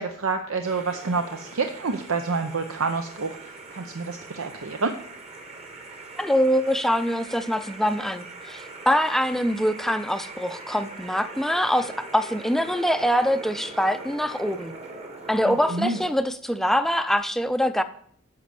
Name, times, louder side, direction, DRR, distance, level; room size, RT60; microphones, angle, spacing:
voice 1, 0.0-4.9 15.5-16.0, right 4 dB, 75° right, 6 dB, 0.7 m, -28 dB
sound 1, 0.6-16.1, right 3 dB, 30° right, 1.4 m, -41 dB
voice 2, 6.2-14.7 15.3-17.8, equal, ahead, 10 dB, 0.5 m, -24 dB
9.5 x 6.3 x 6.9 m, 0.63 s
head